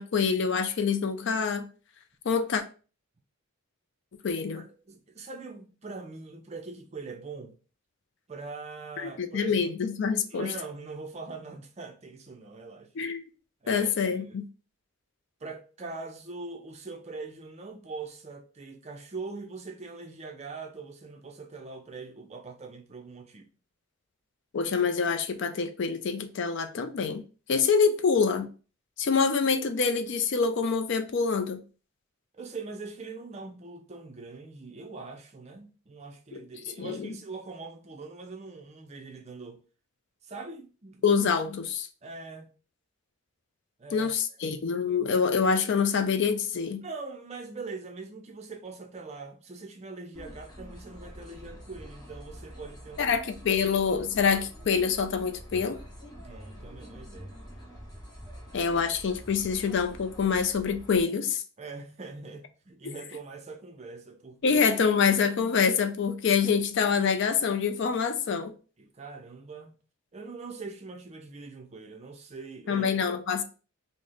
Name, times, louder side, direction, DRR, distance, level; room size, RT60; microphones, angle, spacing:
voice 1, 0.0-1.7 2.3-2.6 4.2-4.6 9.0-10.5 13.0-13.2 13.7-14.4 24.5-27.2 27.5-28.5 29.0-31.6 36.3-36.4 36.8-37.1 41.0-41.9 43.9-46.8 53.0-55.8 58.5-61.4 64.4-68.5 72.7-73.4, left 5 dB, 55° left, 0.4 m, -26 dB
voice 2, 4.6-7.6 8.3-9.7 10.3-12.9 13.6-14.4 15.4-23.5 32.3-39.6 40.2-41.0 42.0-42.5 43.8-44.6 46.8-53.2 53.5-53.7 56.2-57.3 61.6-64.6 68.8-69.7 70.1-73.1, right 3 dB, 30° right, 0.4 m, -42 dB
sound 1, 50.1-61.0, equal, 15° left, 1.0 m, -46 dB
3.2 x 2.1 x 3.8 m
head